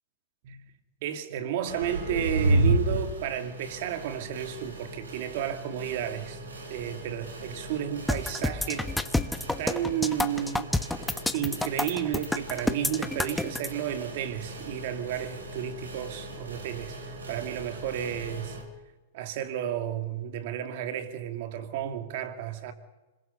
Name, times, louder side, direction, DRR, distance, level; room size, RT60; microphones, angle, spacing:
voice 1, 1.0-6.4 6.7-8.9 9.6-11.1 11.3-18.6 19.1-22.7, right 10 dB, 55° right, 2.5 m, -32 dB
sound 1, 1.6-18.6, right 2 dB, 90° right, 5.9 m, -34 dB
sound 2, 8.1-13.7, left 2 dB, 5° left, 0.9 m, -28 dB
26.5 x 21.5 x 5.5 m
hypercardioid pair, 125°, 0 cm